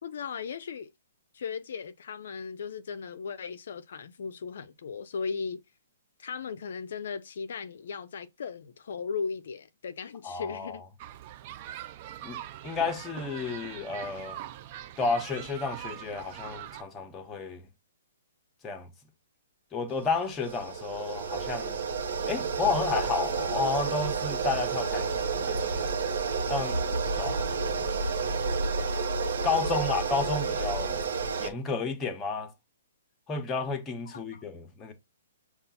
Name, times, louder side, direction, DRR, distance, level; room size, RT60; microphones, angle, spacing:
voice 1, 0.0-0.9 1.3-5.6 6.2-10.8 29.6-30.0 34.1-34.4, left 5 dB, 65° left, 0.4 m, -37 dB
voice 2, 10.2-10.8 12.2-14.4 15.0-17.7 18.6-18.9 19.7-21.8 22.3-26.0 26.5-26.8 27.2-27.5 29.4-31.0 31.4-32.5 33.3-34.9, left 4 dB, 15° left, 0.9 m, -31 dB
sound 1, 11.0-16.8, right 12 dB, 40° right, 0.4 m, -42 dB
sound 2, 19.9-31.5, right 5 dB, 65° right, 0.9 m, -30 dB
5.5 x 2.3 x 4.1 m
hypercardioid pair, 145°, 0 cm